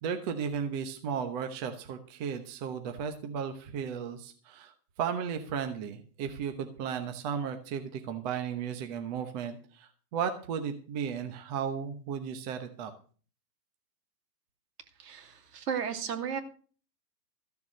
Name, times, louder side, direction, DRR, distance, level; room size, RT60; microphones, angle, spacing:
voice 1, 0.0-4.7 5.0-12.9, right 7 dB, 25° right, 6 dB, 1.0 m, -35 dB
voice 2, 15.0-16.4, right 7 dB, 70° right, 7 dB, 2.6 m, -34 dB
14.5 x 7.1 x 6.5 m, 0.41 s
hypercardioid pair, 160°, 49 cm